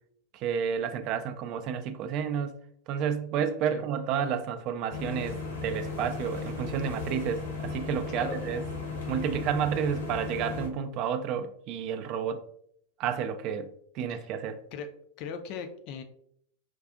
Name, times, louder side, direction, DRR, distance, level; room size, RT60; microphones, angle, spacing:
voice 1, 0.3-2.5 2.9-8.6 9.1-12.4 13.0-13.7 13.9-14.6, right 8 dB, 40° right, 0.3 m, -31 dB
sound 1, 4.9-10.7, left 4 dB, 70° left, 0.9 m, -36 dB
voice 2, 8.1-8.4 14.1-14.3 14.7-14.9 15.2-16.0, left 6 dB, 45° left, 0.4 m, -38 dB
5.2 x 2.4 x 2.4 m
figure-of-eight pair, 90°, 0 cm